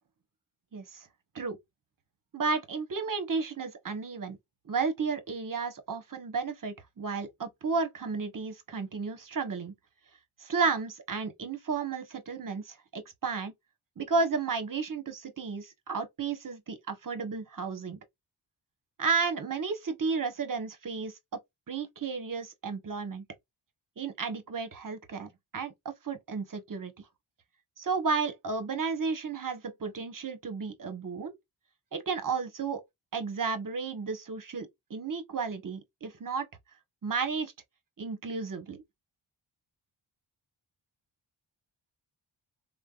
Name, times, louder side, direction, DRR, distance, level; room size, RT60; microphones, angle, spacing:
voice 1, 0.7-1.1 1.3-1.6 2.3-4.4 4.7-9.7 10.4-13.5 14.0-18.0 19.0-21.1 21.7-23.2 24.0-27.1 27.8-31.3 31.9-32.8 33.1-36.5 37.0-37.5 38.0-38.8, right 4 dB, 40° right, 0.9 m, -33 dB
3.3 x 2.0 x 2.3 m
cardioid pair, 45°, 49 cm